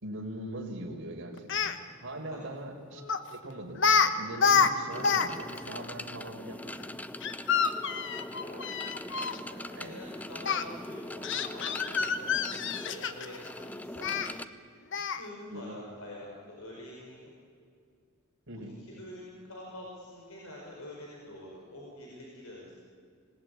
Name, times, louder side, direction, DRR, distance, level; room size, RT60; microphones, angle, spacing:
voice 1, 0.0-6.9 9.7-10.0 15.5-15.8 18.5-18.7, right 1 dB, 60° right, 1 dB, 4.5 m, -41 dB
Speech, 1.4-1.8 3.1-3.3 3.8-4.1 4.3-5.3 5.6-5.7 7.2-9.4 10.4-10.6 11.2-13.4 14.0-14.3 14.9-15.3, left 6 dB, 60° left, 1.2 m, -27 dB
sound 1, 4.9-14.5, left 1 dB, 10° left, 0.6 m, -42 dB
voice 2, 8.4-8.7 9.1-14.4 14.7-14.8 15.1-17.3 18.5-22.8, left 1 dB, 85° left, -3 dB, 5.0 m, -47 dB
26.0 x 19.0 x 9.6 m, 2.4 s
head